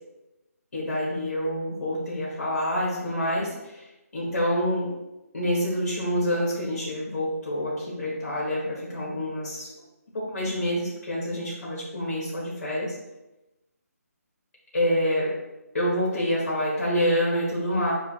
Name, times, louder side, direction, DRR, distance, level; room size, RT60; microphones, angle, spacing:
voice 1, 0.7-3.8 4.1-4.9 5.3-9.7 10.1-12.9 14.7-15.3 15.7-17.9, equal, 50° left, -6 dB, 1.5 m, -27 dB
6.9 x 2.6 x 2.7 m, 0.99 s
hypercardioid pair, 170°, 9 cm